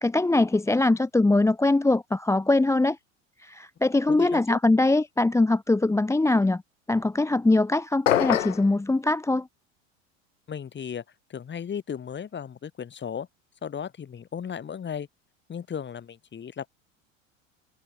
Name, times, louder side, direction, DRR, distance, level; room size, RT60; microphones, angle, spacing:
voice 1, 0.0-3.0 3.4-6.6 6.9-9.5, left 2 dB, 5° left, 1.2 m, -22 dB
voice 2, 4.1-4.6 10.5-11.0 11.3-13.3 13.6-15.1 15.5-16.7, left 7 dB, 30° left, 5.4 m, -35 dB
sound 1, 8.1-8.7, left 10 dB, 75° left, 2.0 m, -23 dB
figure-of-eight pair, 75°, 39 cm